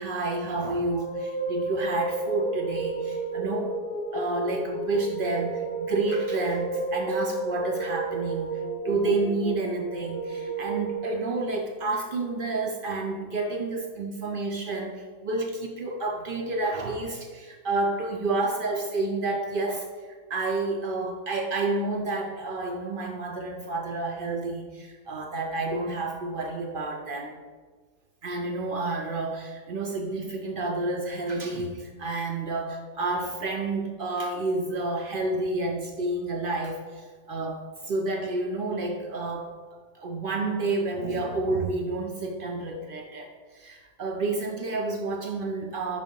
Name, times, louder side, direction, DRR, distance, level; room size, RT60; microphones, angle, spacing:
voice 1, 0.0-3.8 4.1-19.9 20.3-27.4 28.2-39.6 39.9-46.0, right 2 dB, 70° right, 1 dB, 0.5 m, -30 dB
sound 1, 0.7-11.0, right 2 dB, 45° left, 0.8 m, -31 dB
5.5 x 3.3 x 5.2 m, 1.5 s
omnidirectional pair, 1.5 m